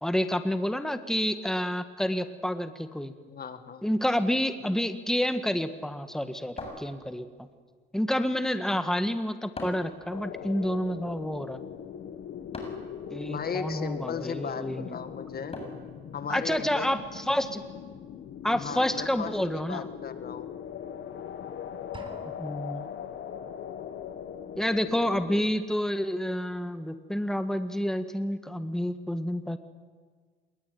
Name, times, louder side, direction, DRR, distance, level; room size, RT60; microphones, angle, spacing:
voice 1, 0.0-3.1 3.8-7.3 7.9-11.6 13.1-15.0 16.3-17.6 18.4-19.9 22.4-22.9 24.6-29.6, equal, ahead, 9 dB, 1.8 m, -29 dB
voice 2, 3.3-3.8 13.2-15.6 16.1-17.0 18.5-20.5, left 6 dB, 50° left, 10 dB, 1.8 m, -37 dB
sound 1, 6.6-7.5 9.5-10.0 12.5-12.9 15.5-16.0, left 2 dB, 30° left, 7.5 m, -40 dB
sound 2, 10.1-25.4, left 8 dB, 70° left, 1.9 m, -40 dB
sound 3, 21.9-22.9, right 2 dB, 25° right, 4.0 m, -47 dB
27.0 x 22.0 x 9.5 m, 1.6 s
cardioid pair, 90°, 20 cm